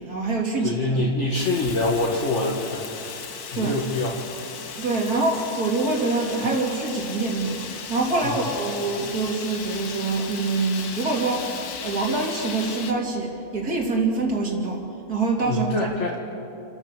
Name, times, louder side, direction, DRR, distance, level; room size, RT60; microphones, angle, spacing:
voice 1, 0.0-1.1 3.6-3.8 4.8-11.5 11.8-15.9, right 3 dB, 75° right, 0 dB, 3.5 m, -25 dB
voice 2, 0.6-2.8 3.5-4.1 15.5-16.2, left 2 dB, 50° left, -2 dB, 2.1 m, -24 dB
Fire, 1.3-12.9, left 6 dB, 80° left, 1.7 m, -36 dB
29.5 x 12.5 x 6.9 m, 2.7 s
omnidirectional pair, 1.6 m